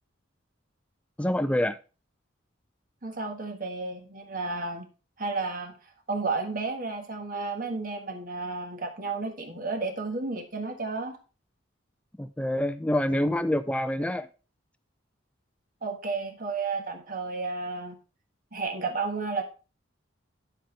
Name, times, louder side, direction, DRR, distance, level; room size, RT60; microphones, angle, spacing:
voice 1, 1.2-1.8 12.2-14.3, left 1 dB, 5° left, 0.4 m, -26 dB
voice 2, 3.0-4.9 5.2-5.7 6.1-11.2 15.8-18.0 18.5-19.4, right 3 dB, 45° right, 1.5 m, -32 dB
9.0 x 7.5 x 3.3 m
head